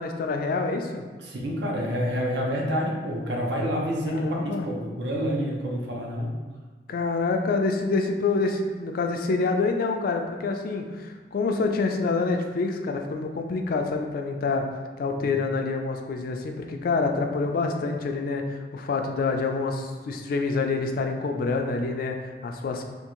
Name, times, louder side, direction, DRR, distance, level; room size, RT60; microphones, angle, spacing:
voice 1, 0.0-1.0 4.1-4.7 6.9-14.7 15.0-22.8, left 3 dB, 55° left, 4 dB, 0.3 m, -27 dB
voice 2, 1.2-6.3 15.2-15.4, equal, 75° right, -1 dB, 0.7 m, -28 dB
3.5 x 2.4 x 2.9 m, 1.4 s
head